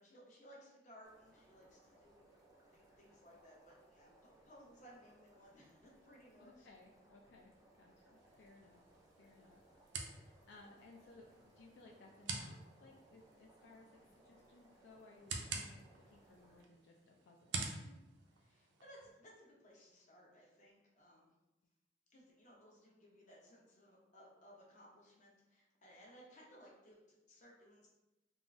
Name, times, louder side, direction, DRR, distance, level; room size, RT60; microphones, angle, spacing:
voice 1, 0.0-2.3 2.7-4.1 4.4-6.7 17.7-18.0 18.4-21.3 22.1-27.0 27.3-27.9, equal, 45° left, -4 dB, 0.8 m, -61 dB
sound 1, 1.0-16.6, right 1 dB, 20° right, 0.5 m, -67 dB
voice 2, 6.4-7.5 7.8-8.8 9.2-9.6 10.1-11.3 11.6-17.6, left 3 dB, 80° left, -1 dB, 0.3 m, -62 dB
sound 2, 8.2-19.1, right 4 dB, 85° right, 0.4 m, -49 dB
3.6 x 2.0 x 2.5 m, 0.98 s
head